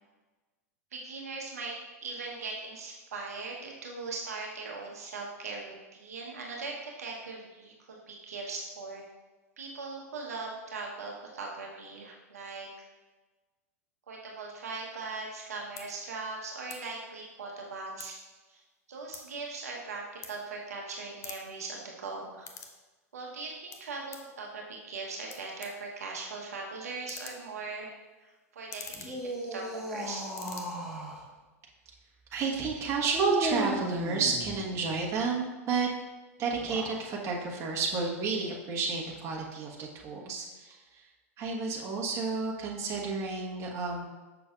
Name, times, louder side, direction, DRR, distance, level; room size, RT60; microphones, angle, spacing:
voice 1, 0.9-1.7 2.0-9.0 9.6-12.7 14.1-18.2 18.5-18.6 18.9-22.5 23.1-30.2, right 3 dB, 80° right, -1 dB, 1.0 m, -40 dB
sound 1, 15.2-15.4 15.7-15.9 16.6-16.8 17.1-18.3 18.7-20.8 21.1-22.8 23.1-24.3 24.9-25.0 25.3-30.0 30.2-30.6, left 6 dB, 35° left, 0.8 m, -47 dB
sound 2, 28.9-31.2 33.1-34.9 36.5-37.0, right 1 dB, 5° right, 1.3 m, -36 dB
voice 2, 32.3-35.9 36.4-41.0 41.4-44.1, right 4 dB, 35° right, -2 dB, 1.3 m, -31 dB
7.0 x 6.0 x 2.4 m, 1.2 s
hypercardioid pair, 100°, 8 cm